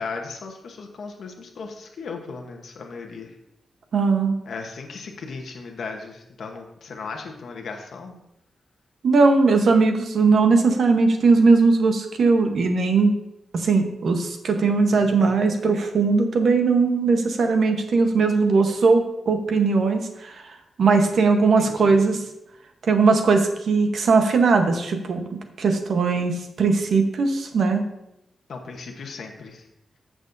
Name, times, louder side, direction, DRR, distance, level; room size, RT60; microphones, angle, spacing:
voice 1, 0.0-3.4 4.5-8.2 14.6-15.2 21.6-22.0 28.5-29.7, left 4 dB, 65° left, 2 dB, 1.0 m, -36 dB
voice 2, 3.9-4.4 9.0-13.1 13.5-22.2 22.9-25.3 25.6-27.8, right 4 dB, 65° right, 5 dB, 1.0 m, -19 dB
15.0 x 6.2 x 2.6 m, 0.84 s
wide cardioid pair, 180°, 0 cm